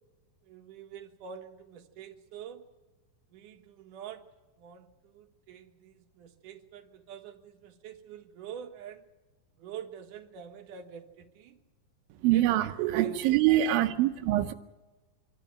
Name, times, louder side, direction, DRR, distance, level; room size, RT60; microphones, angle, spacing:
voice 1, 0.4-2.6 3.3-4.2 4.6-9.1 9.6-11.6 12.3-12.5 12.9-13.4, right 8 dB, 70° right, 2.9 m, -46 dB
voice 2, 12.2-14.5, right 13 dB, 90° right, 2.6 m, -24 dB
26.0 x 13.0 x 9.1 m
omnidirectional pair, 4.0 m